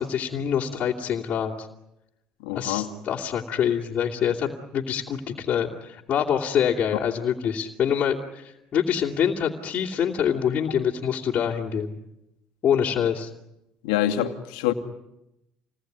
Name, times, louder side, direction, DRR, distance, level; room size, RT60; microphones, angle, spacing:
voice 1, 0.0-1.7 2.5-11.9 12.6-13.3, left 8 dB, 50° left, 2.9 m, -25 dB
voice 2, 2.4-2.9 13.8-14.7, left 12 dB, 90° left, 2.3 m, -25 dB
28.0 x 20.0 x 9.5 m
supercardioid pair, 85°, 3 cm